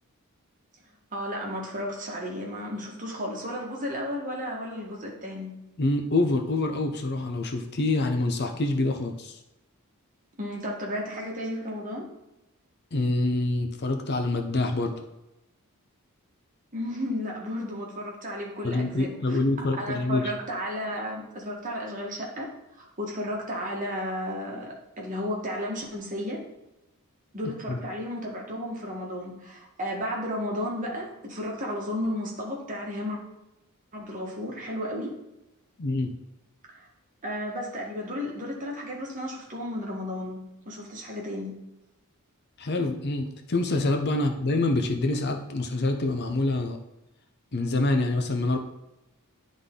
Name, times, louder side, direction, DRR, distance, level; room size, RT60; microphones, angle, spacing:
voice 1, 1.1-5.5 10.4-12.1 16.7-19.4 19.8-22.5 22.8-26.4 27.3-33.2 33.9-35.2 36.7-36.9 37.2-41.6, equal, 35° right, -1 dB, 1.5 m, -33 dB
voice 2, 5.8-9.4 12.9-15.0 18.6-20.3 27.7-27.8 35.8-36.1 42.6-46.8 47.5-48.6, left 2 dB, 50° left, 4 dB, 0.7 m, -26 dB
9.7 x 3.7 x 3.7 m, 0.94 s
head